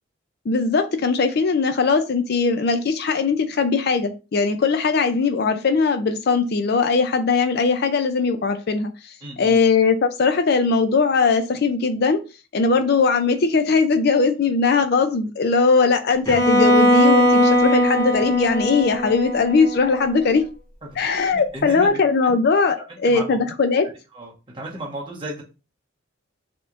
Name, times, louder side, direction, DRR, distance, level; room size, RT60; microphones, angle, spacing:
voice 1, 0.5-8.9 9.4-12.2 12.5-20.4 21.0-23.9, left 4 dB, 50° left, 0.4 m, -20 dB
voice 2, 9.2-9.6 20.8-22.3 23.0-23.4 23.8-25.4, right 1 dB, 25° right, 1.2 m, -35 dB
Bowed string instrument, 16.3-20.3, equal, 15° left, 1.0 m, -19 dB
6.0 x 3.0 x 2.5 m
head